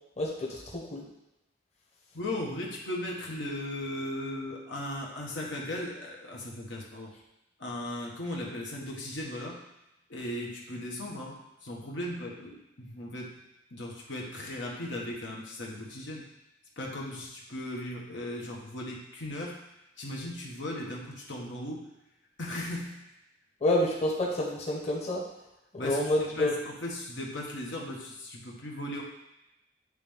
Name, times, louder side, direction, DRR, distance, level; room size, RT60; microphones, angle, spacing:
voice 1, 0.2-1.0 23.6-25.2 25.8-26.5, left 1 dB, 40° left, -4 dB, 1.2 m, -28 dB
voice 2, 2.1-7.1 7.6-9.6 10.1-13.3 13.7-16.2 16.8-19.6 20.0-21.9 22.4-23.0 25.8-29.0, left 1 dB, 85° left, -2 dB, 1.3 m, -37 dB
9.4 x 3.3 x 3.6 m, 0.92 s
head